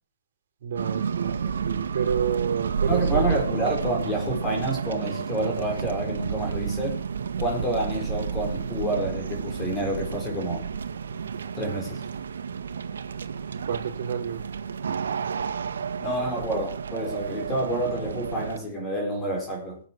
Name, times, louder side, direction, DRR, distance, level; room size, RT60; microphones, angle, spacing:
voice 1, 0.6-3.3 13.5-14.4, right 8 dB, 55° right, 2 dB, 5.3 m, -30 dB
sound 1, 0.7-18.6, right 6 dB, 85° right, 1.8 m, -31 dB
voice 2, 2.9-7.0 7.4-10.6 11.5-12.0 16.0-19.8, right 1 dB, 10° left, 0 dB, 5.1 m, -28 dB
22.0 x 8.8 x 4.8 m, 0.43 s
hypercardioid pair, 160°, 0 cm